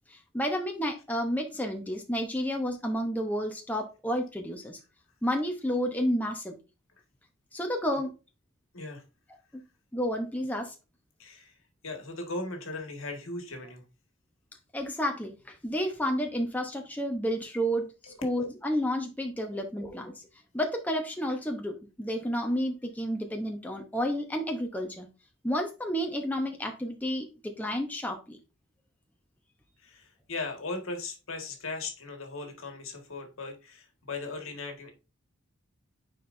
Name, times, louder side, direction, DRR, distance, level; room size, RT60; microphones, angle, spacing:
voice 1, 0.1-4.8 5.2-6.6 7.5-8.1 9.5-9.6 9.9-10.7 14.7-20.2 20.5-25.1 25.4-28.4, equal, 10° left, 2 dB, 0.8 m, -31 dB
voice 2, 11.2-11.6 11.8-13.8 18.0-18.1 19.5-19.6 29.8-34.9, left 3 dB, 75° left, 4 dB, 1.7 m, -38 dB
9.7 x 4.5 x 2.6 m, 0.30 s
head